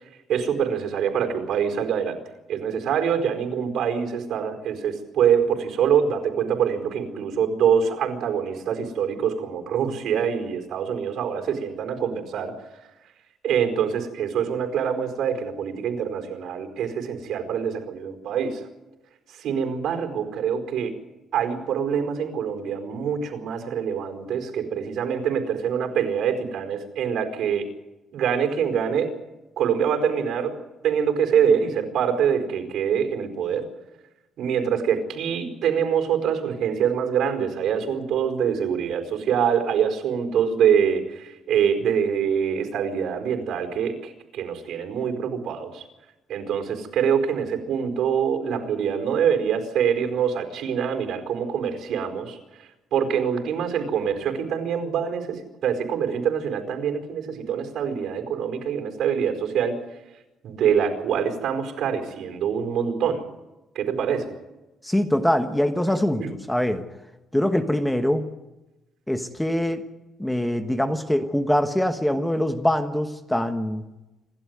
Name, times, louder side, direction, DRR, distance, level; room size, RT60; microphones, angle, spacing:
voice 1, 0.3-2.2 2.5-12.5 13.4-18.6 19.3-21.0 21.3-27.7 28.1-29.1 29.6-30.5 30.8-33.7 34.4-45.8 46.3-59.8 60.4-63.2 63.7-64.3 66.2-66.3, right 7 dB, 70° right, 4 dB, 4.7 m, -25 dB
voice 2, 64.8-66.9 67.3-68.3 69.1-69.9 70.2-73.8, left 1 dB, 5° left, 7 dB, 1.2 m, -23 dB
27.5 x 12.0 x 9.5 m, 1.0 s
cardioid pair, 145°, 0 cm